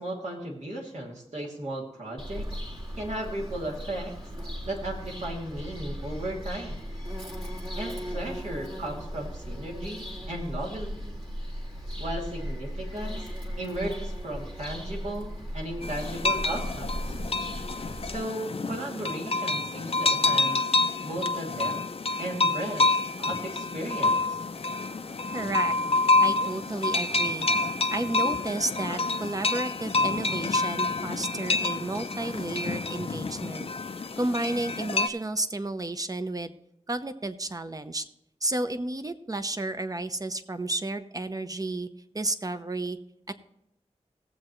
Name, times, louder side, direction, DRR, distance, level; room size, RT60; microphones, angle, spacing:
voice 1, 0.0-2.5 2.9-4.1 4.6-6.8 7.8-11.2 12.0-13.3 13.6-17.0 18.0-20.7 21.0-21.8 22.2-22.9 23.2-24.4, right 1 dB, 75° right, -3 dB, 2.7 m, -35 dB
Bird vocalization bird call bird song, 2.2-18.2, equal, 50° right, 2.0 m, -37 dB
sound 1, 15.8-35.1, left 3 dB, 55° left, 0.5 m, -28 dB
voice 2, 25.3-27.5 27.9-33.7 34.2-36.5 36.9-38.0 38.4-41.9 42.1-43.0 43.3-43.4, right 2 dB, 30° right, 9 dB, 0.7 m, -32 dB
18.0 x 7.6 x 3.1 m, 0.82 s
wide cardioid pair, 75°, 12 cm